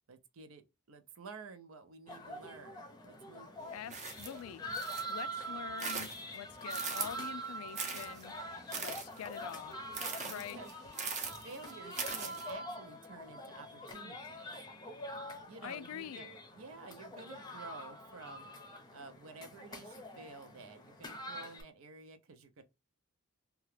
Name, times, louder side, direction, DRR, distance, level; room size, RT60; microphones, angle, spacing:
voice 1, 0.1-3.9 10.3-10.7 11.4-14.4 15.5-22.6, right 4 dB, 75° right, 0.6 m, -52 dB
sound 1, 2.1-21.6, right 1 dB, 20° left, 0.6 m, -45 dB
voice 2, 3.7-4.6 5.1-8.3 8.8-9.8 10.2-10.6 15.6-16.3, left 9 dB, 85° left, 0.3 m, -45 dB
sound 2, 3.9-5.2 5.6-7.3 7.7-12.5, right 5 dB, 35° right, 0.6 m, -41 dB
2.9 x 2.3 x 3.2 m
head